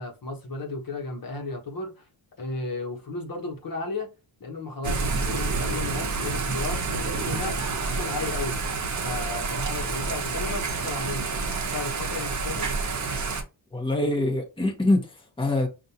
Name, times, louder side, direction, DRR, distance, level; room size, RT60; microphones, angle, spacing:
voice 1, 0.0-2.1 2.4-4.1 4.4-8.6 9.0-11.3 11.6-12.7, left 3 dB, 45° left, 1.1 m, -34 dB
Thunder / Rain, 4.8-13.4, right 4 dB, 40° right, 0.9 m, -28 dB
voice 2, 13.7-15.7, left 2 dB, 10° left, 1.1 m, -24 dB
5.3 x 2.6 x 2.8 m
cardioid pair, 110°, 47 cm